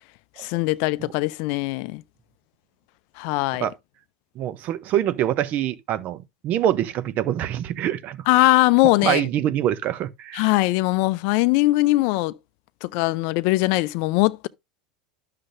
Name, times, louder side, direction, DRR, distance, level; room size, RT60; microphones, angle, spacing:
voice 1, 0.4-2.0 3.2-3.7 8.3-9.3 10.3-12.4 12.8-14.5, left 20 dB, 60° left, 0.4 m, -21 dB
voice 2, 4.4-8.2 9.0-10.5, right 11 dB, 45° right, 0.7 m, -25 dB
11.0 x 6.6 x 2.6 m
hypercardioid pair, 90°, 4 cm